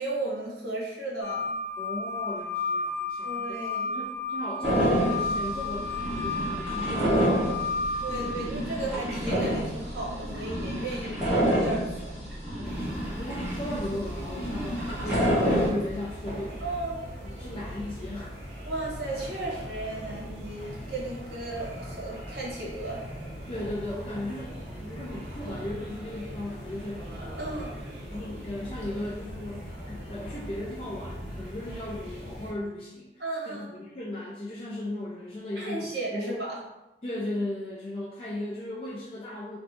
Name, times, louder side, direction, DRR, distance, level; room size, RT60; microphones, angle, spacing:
voice 1, 0.0-1.5 3.2-4.0 8.0-12.2 16.6-17.0 18.6-23.0 27.4-27.8 33.2-33.8 35.6-36.6, right 2 dB, 65° right, -3 dB, 1.0 m, -35 dB
sound 1, 1.2-8.3, left 3 dB, 80° left, 0.6 m, -32 dB
voice 2, 1.8-3.6 3.9-7.8 8.2-8.3 12.6-16.6 17.2-18.4 23.5-24.5 24.8-27.1 27.5-27.7 28.1-36.4 37.0-39.6, left 1 dB, 30° left, -6 dB, 0.4 m, -36 dB
sound 2, 4.6-15.7, equal, 5° right, 1.2 m, -28 dB
sound 3, 12.6-32.5, equal, 40° right, 1.3 m, -40 dB
2.7 x 2.2 x 4.0 m, 0.97 s
head